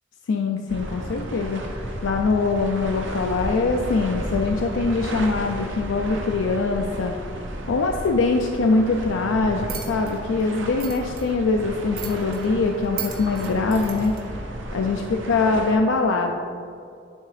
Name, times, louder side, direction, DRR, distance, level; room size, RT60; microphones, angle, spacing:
voice 1, 0.3-7.1 7.7-14.4 14.7-15.0 15.3-16.3, left 3 dB, 90° left, 2 dB, 0.4 m, -23 dB
sound 1, 0.7-15.8, right 1 dB, 80° right, 0.7 m, -33 dB
sound 2, 9.6-14.2, right 8 dB, 50° right, 0.8 m, -38 dB
9.5 x 3.6 x 3.3 m, 2.5 s
head